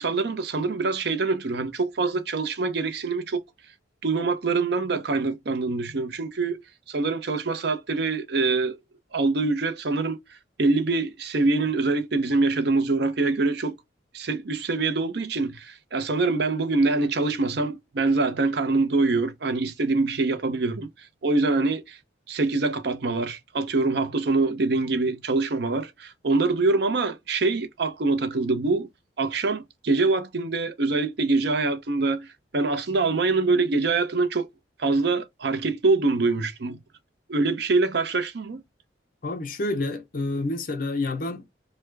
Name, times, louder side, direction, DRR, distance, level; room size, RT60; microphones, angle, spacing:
voice 1, 0.0-3.4 4.0-6.6 6.9-8.8 9.1-10.2 10.6-13.8 14.1-20.9 21.2-22.0 22.3-28.9 29.2-32.3 32.5-34.5 34.8-36.8 37.3-38.6, right 3 dB, 60° right, 0.6 m, -24 dB
voice 2, 39.2-41.4, left 2 dB, 50° left, 0.6 m, -28 dB
3.3 x 2.1 x 3.2 m
head